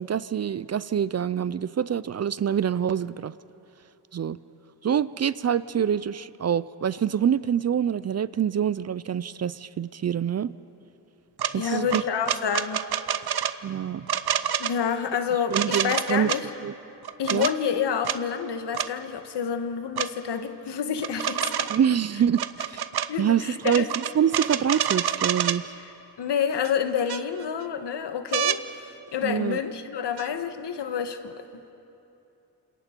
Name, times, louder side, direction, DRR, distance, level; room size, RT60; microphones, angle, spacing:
voice 1, 0.0-3.3 4.1-4.4 4.8-10.5 11.5-12.0 13.6-14.1 15.5-16.3 16.6-16.7 17.3-17.5 21.7-22.8 23.2-25.7 29.2-29.6, right 8 dB, 40° right, 17 dB, 0.4 m, -26 dB
sound 1, 11.4-11.5 11.9-13.5 14.1-14.7 15.5-16.4 17.0-17.5 18.0-18.2 18.7-18.9 20.0-20.1 21.0-21.9 22.3-23.1 23.6-25.6 26.6-26.7 27.1-27.6 28.3-28.6 30.2-30.3, right 9 dB, 65° right, 0.8 m, -27 dB
voice 2, 11.5-12.8 14.6-16.5 17.2-21.7 23.1-23.9 26.2-31.4, left 7 dB, 75° left, 8 dB, 1.4 m, -28 dB
28.5 x 27.0 x 4.5 m, 2.9 s
wide cardioid pair, 105°, 41 cm